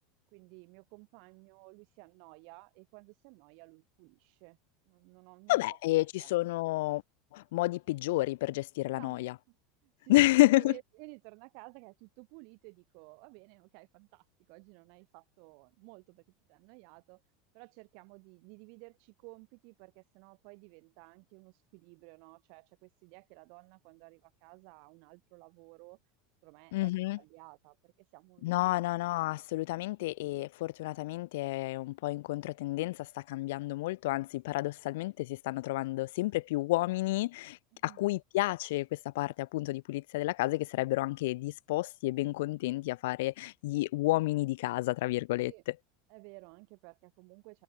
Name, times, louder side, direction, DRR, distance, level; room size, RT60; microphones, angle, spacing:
voice 1, 0.3-4.6 4.9-6.3 8.9-9.6 9.8-16.2 16.5-17.2 17.5-26.0 26.4-26.9 27.2-28.9 37.7-38.1 45.5-45.6 46.1-47.6, right 40 dB or more, 55° right, 5.4 m, -54 dB
voice 2, 5.5-7.0 7.3-9.3 10.1-10.7 26.7-27.2 28.4-37.6 37.8-45.5, left 19 dB, 70° left, 0.4 m, -30 dB
supercardioid pair, 155°, 0 cm